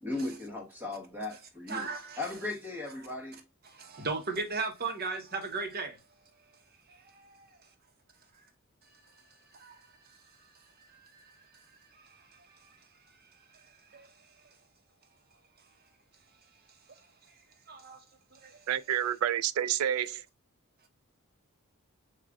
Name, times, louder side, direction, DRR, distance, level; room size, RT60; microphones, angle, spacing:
voice 1, 0.0-3.4, left 2 dB, 10° right, 1.2 m, -37 dB
voice 2, 1.7-2.2 3.6-6.0 6.9-7.3 8.9-10.5 10.8-12.9 13.3-14.5 16.9-17.0 17.7-18.0 18.3-18.7, right 3 dB, 50° right, 1.0 m, -39 dB
voice 3, 18.7-20.2, right 10 dB, 85° right, 0.3 m, -29 dB
7.2 x 2.4 x 2.3 m
head